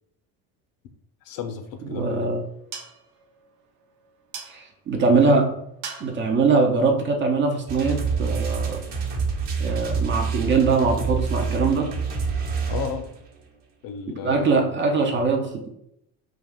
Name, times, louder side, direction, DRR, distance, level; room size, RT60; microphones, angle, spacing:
voice 1, 1.2-2.2 12.7-13.1 13.8-14.6, left 7 dB, 45° left, 7 dB, 0.6 m, -33 dB
sound 1, 1.5-8.0, right 6 dB, 85° right, 0.6 m, -44 dB
voice 2, 1.8-2.4 4.5-5.6 6.0-8.8 9.6-11.9 14.2-15.7, right 4 dB, 25° right, 4 dB, 0.4 m, -22 dB
sound 2, 7.7-13.3, right 5 dB, 60° right, 1.1 m, -27 dB
2.4 x 2.3 x 3.4 m, 0.77 s
hypercardioid pair, 70°, 48 cm